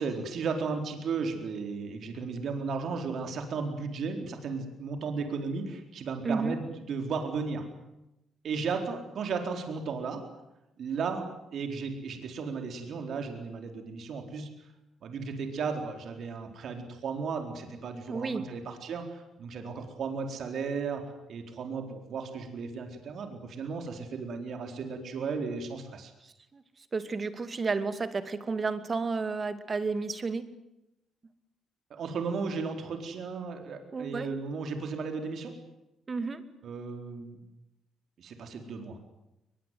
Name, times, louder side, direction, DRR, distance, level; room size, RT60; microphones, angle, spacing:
voice 1, 0.0-7.7 8.4-10.3 10.8-14.5 15.0-21.0 21.3-26.1 31.9-35.6 36.6-37.4 38.2-39.0, right 5 dB, 65° right, 5 dB, 4.3 m, -35 dB
voice 2, 6.2-6.6 18.1-18.4 26.2-26.6 26.9-30.5 33.9-34.3 36.1-36.4, right 4 dB, 35° right, 11 dB, 2.5 m, -32 dB
22.5 x 21.5 x 9.5 m, 0.88 s
cardioid pair, 90°, 0 cm